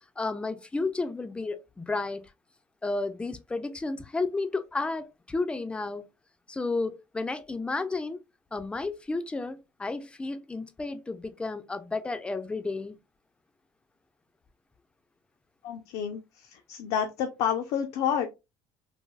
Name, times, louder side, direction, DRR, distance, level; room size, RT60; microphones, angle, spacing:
voice 1, 0.2-2.2 2.8-6.1 6.5-8.2 8.5-13.0, left 3 dB, 10° left, 0.3 m, -32 dB
voice 2, 15.6-16.2 16.7-18.3, left 8 dB, 75° left, 0.5 m, -28 dB
3.3 x 2.2 x 2.2 m
cardioid pair, 130°, 10 cm